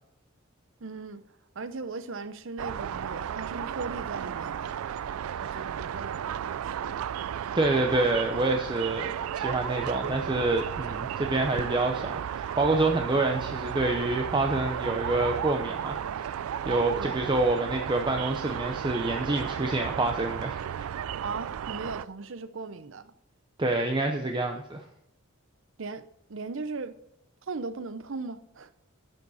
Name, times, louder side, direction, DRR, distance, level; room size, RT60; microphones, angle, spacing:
voice 1, 0.8-1.2 1.6-4.8 5.4-7.0 16.9-17.3 21.2-23.1 25.8-26.0 26.3-26.9 27.5-28.7, right 4 dB, 65° right, 0.7 m, -38 dB
sound 1, 2.6-22.0, right 9 dB, 90° right, 0.3 m, -34 dB
voice 2, 7.5-16.3 16.6-20.8 23.6-24.8, right 2 dB, 20° right, 0.7 m, -27 dB
11.0 x 7.2 x 4.2 m
head